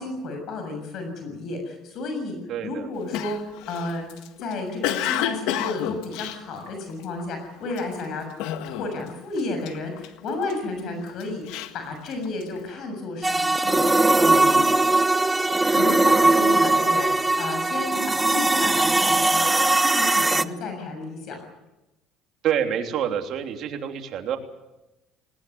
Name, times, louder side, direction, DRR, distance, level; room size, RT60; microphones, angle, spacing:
voice 1, 0.0-2.4 2.6-4.1 4.4-8.3 8.7-14.7 15.7-21.4, left 3 dB, 55° left, 5 dB, 7.1 m, -32 dB
voice 2, 2.5-2.9 22.4-24.4, right 9 dB, 55° right, 4 dB, 3.2 m, -27 dB
Cough, 3.1-7.2 7.7-8.0 8.4-9.1 9.4-10.5 11.1-12.6, left 11 dB, 80° left, 1.7 m, -30 dB
sound 1, 13.2-20.4, right 2 dB, 10° right, 0.7 m, -20 dB
19.5 x 19.5 x 9.5 m, 0.96 s
cardioid pair, 115°, 0 cm